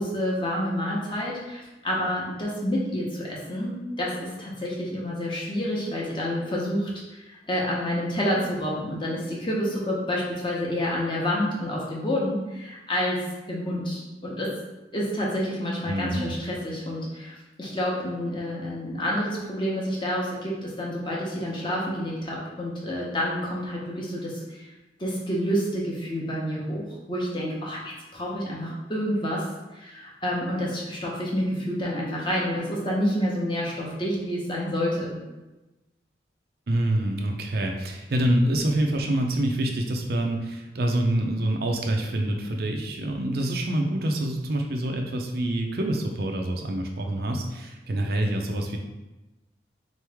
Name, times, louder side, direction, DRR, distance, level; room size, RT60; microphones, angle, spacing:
voice 1, 0.0-14.5 14.9-24.7 25.0-35.1, equal, 25° left, -4 dB, 0.9 m, -29 dB
voice 2, 15.8-16.4 36.7-48.8, right 1 dB, 55° right, 2 dB, 0.5 m, -26 dB
3.9 x 3.1 x 3.4 m, 1.0 s
head